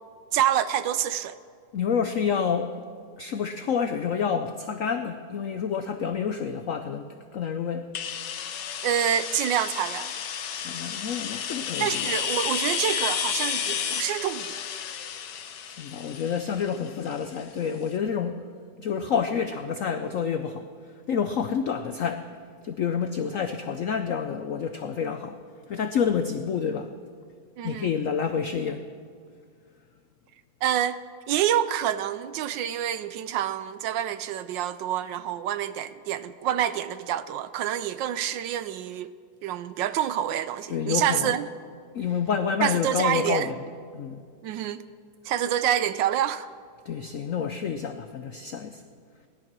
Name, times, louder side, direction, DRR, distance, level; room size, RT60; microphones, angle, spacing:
voice 1, 0.3-1.4 8.8-10.1 11.8-14.6 27.6-27.9 30.6-31.0 31.3-39.1 39.4-41.5 42.6-43.5 44.4-44.8 45.2-46.5, right 10 dB, 75° right, 1.2 m, -27 dB
voice 2, 1.7-2.8 3.2-7.9 10.6-12.1 15.7-18.4 18.8-20.6 21.1-22.3 22.6-25.4 25.7-26.9 27.6-28.8 40.7-41.4 41.9-43.6 43.9-44.2 46.9-48.8, left 7 dB, 85° left, 0.7 m, -28 dB
sound 1, 7.9-17.6, left 8 dB, 65° left, 1.4 m, -32 dB
18.0 x 11.5 x 6.1 m
omnidirectional pair, 2.2 m